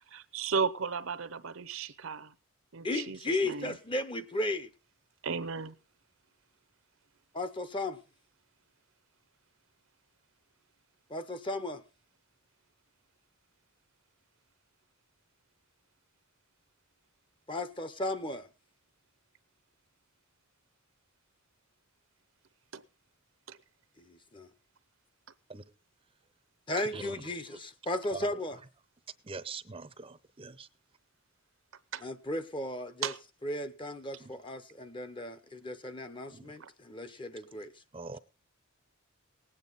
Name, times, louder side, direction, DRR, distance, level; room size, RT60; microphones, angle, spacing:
voice 1, 0.1-2.3 2.7-3.7 5.2-5.8 22.7-22.8 23.5-23.6 31.9-32.0 33.0-33.2 36.6-36.7, right 5 dB, 65° right, 16 dB, 0.8 m, -35 dB
voice 2, 2.8-4.7 7.3-8.0 11.1-11.8 17.5-18.5 24.1-24.5 26.7-28.6 32.0-33.1 33.4-37.7, left 1 dB, 20° left, 11 dB, 0.8 m, -35 dB
voice 3, 26.8-27.1 28.1-28.3 29.2-30.7 34.2-34.3 36.3-36.5 37.9-38.2, right 4 dB, 25° right, 14 dB, 0.7 m, -42 dB
19.0 x 8.9 x 4.0 m, 0.30 s
head